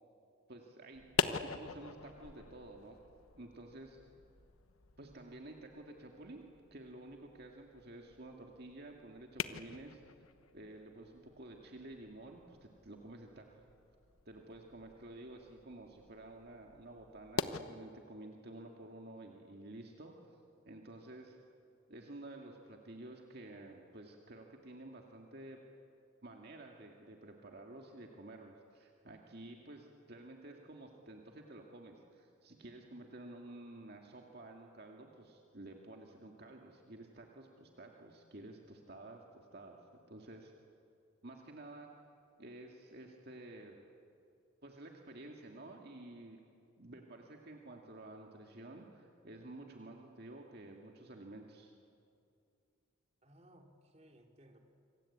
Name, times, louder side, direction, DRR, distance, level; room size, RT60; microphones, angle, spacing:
voice 1, 0.5-1.1 1.4-3.0 3.3-4.0 5.0-10.0 10.5-13.6 14.3-20.1 20.6-21.4 21.9-25.6 26.2-39.8 40.1-40.5 41.2-41.9 42.4-43.8 44.6-46.4 46.8-51.7, right 2 dB, 50° right, 1 dB, 2.2 m, -51 dB
sound 1, 0.9-17.6, left 5 dB, 85° left, 1.1 m, -44 dB
voice 2, 53.2-54.6, right 1 dB, 30° right, 3 dB, 2.9 m, -61 dB
26.5 x 26.0 x 8.7 m, 2.5 s
head